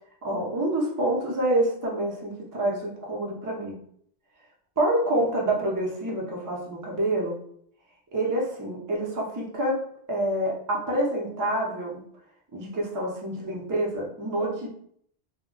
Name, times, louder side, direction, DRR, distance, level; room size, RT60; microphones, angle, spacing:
voice 1, 0.2-3.8 4.8-7.3 8.1-9.8 10.1-12.0 12.5-14.7, right 1 dB, 30° right, -2 dB, 0.4 m, -27 dB
2.1 x 2.1 x 3.7 m, 0.65 s
omnidirectional pair, 1.2 m